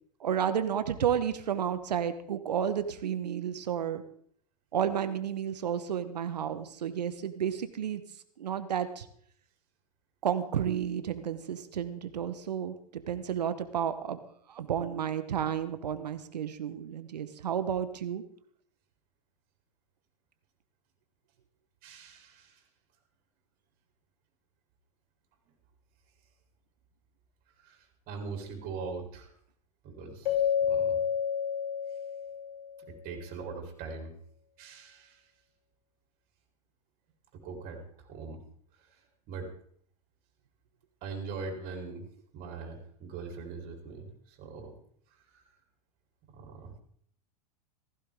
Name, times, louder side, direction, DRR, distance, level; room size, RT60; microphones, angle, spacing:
voice 1, 0.2-4.0 4.7-8.0 8.4-9.1 10.2-14.2 14.5-18.2, right 9 dB, 90° right, 11 dB, 1.2 m, -31 dB
voice 2, 21.8-22.6 27.6-27.8 28.1-29.3 29.8-31.0 32.9-34.1 34.6-35.2 37.4-37.8 38.1-38.4 39.3-39.5 41.0-42.1 42.3-44.7 45.3-45.4 46.3-46.7, right 4 dB, 45° right, 2 dB, 4.1 m, -41 dB
Keyboard (musical), 30.3-32.7, left 8 dB, 75° left, 3.6 m, -29 dB
15.5 x 15.5 x 3.7 m, 0.62 s
hypercardioid pair, 110°, 20 cm